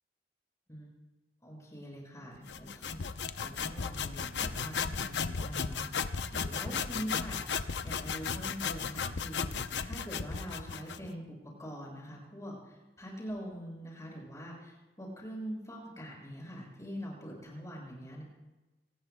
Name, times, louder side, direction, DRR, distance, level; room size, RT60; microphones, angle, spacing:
voice 1, 1.4-18.2, equal, 20° left, -2 dB, 6.4 m, -43 dB
sound 1, 2.5-11.1, left 6 dB, 85° left, 0.7 m, -35 dB
26.5 x 19.5 x 2.2 m, 1.1 s
head